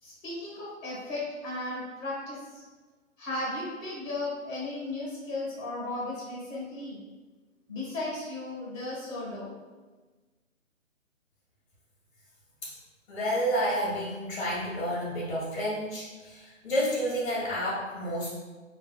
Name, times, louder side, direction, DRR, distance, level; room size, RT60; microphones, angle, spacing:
voice 1, 0.0-2.6 3.2-7.0 7.7-9.5, left 2 dB, 20° left, -6 dB, 1.0 m, -35 dB
voice 2, 13.1-18.3, equal, 45° left, -6 dB, 0.7 m, -30 dB
2.2 x 2.0 x 3.3 m, 1.3 s
hypercardioid pair, 155°, 40 cm